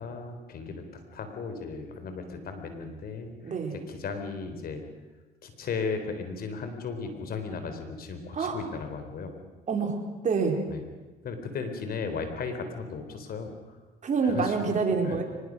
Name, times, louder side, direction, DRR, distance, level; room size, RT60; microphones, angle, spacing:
voice 1, 0.0-3.3 3.9-4.8 5.4-9.3 10.7-10.8 11.2-13.8 14.2-14.6 15.0-15.2, left 4 dB, 60° left, 7 dB, 3.8 m, -36 dB
voice 2, 3.4-3.8 8.3-8.6 9.7-10.6 14.0-15.2, right 4 dB, 45° right, 3 dB, 4.3 m, -27 dB
24.0 x 20.5 x 6.4 m, 1.2 s
cardioid pair, 85°, 17 cm